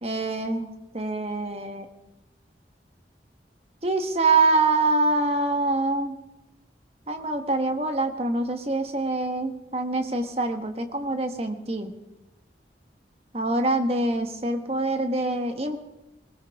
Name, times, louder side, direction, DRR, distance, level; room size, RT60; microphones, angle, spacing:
voice 1, 0.0-1.9 3.8-6.2 7.1-11.9 13.3-15.8, right 2 dB, 35° right, 6 dB, 1.2 m, -25 dB
20.5 x 18.5 x 3.5 m, 0.98 s
head